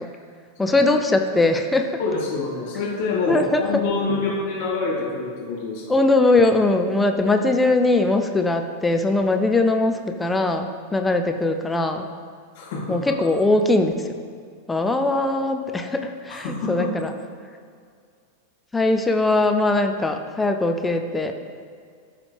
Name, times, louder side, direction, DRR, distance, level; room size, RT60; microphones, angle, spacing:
voice 1, 0.6-2.0 3.3-3.6 5.9-12.1 12.9-14.2 14.7-17.1 18.7-21.3, left 2 dB, 10° left, 5 dB, 0.5 m, -21 dB
voice 2, 2.0-6.0 12.5-13.1 16.3-16.9, left 3 dB, 50° left, -5 dB, 2.2 m, -26 dB
13.5 x 4.9 x 3.4 m, 2.1 s
figure-of-eight pair, 90°, 0 cm